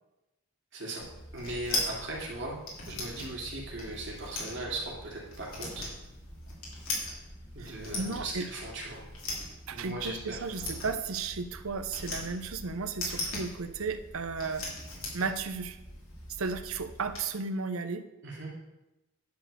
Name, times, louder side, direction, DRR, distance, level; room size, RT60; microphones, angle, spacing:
voice 1, 0.7-1.0 1.3-2.6 2.9-5.9 7.5-9.0 9.7-10.5 18.2-18.5, right 2 dB, 55° right, -3 dB, 2.5 m, -38 dB
sound 1, 1.0-17.2, left 2 dB, 70° left, 3.0 m, -40 dB
voice 2, 7.6-8.5 9.7-14.7 15.1-15.8 16.4-18.0, right 4 dB, 75° right, 9 dB, 0.7 m, -34 dB
10.5 x 4.5 x 6.6 m, 0.98 s
head